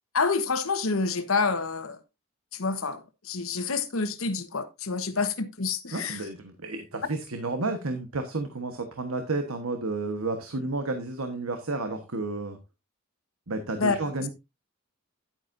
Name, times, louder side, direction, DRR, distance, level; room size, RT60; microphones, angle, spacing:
voice 1, 0.1-2.0 2.5-6.2 13.8-14.0, left 4 dB, 70° left, 1.3 m, -28 dB
voice 2, 5.9-12.6 13.5-14.3, right 2 dB, 85° right, 1.3 m, -31 dB
10.5 x 9.2 x 2.6 m
head